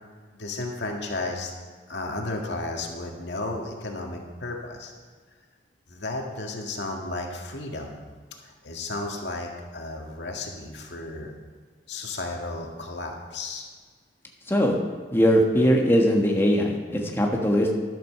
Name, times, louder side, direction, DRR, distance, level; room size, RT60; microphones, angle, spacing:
voice 1, 0.3-1.5 1.9-4.9 5.9-8.0 8.4-11.3 11.9-13.7, left 2 dB, 85° left, 1 dB, 1.9 m, -33 dB
voice 2, 14.5-14.8 15.1-17.7, equal, 15° left, 0 dB, 1.4 m, -20 dB
12.0 x 8.0 x 6.7 m, 1.5 s
head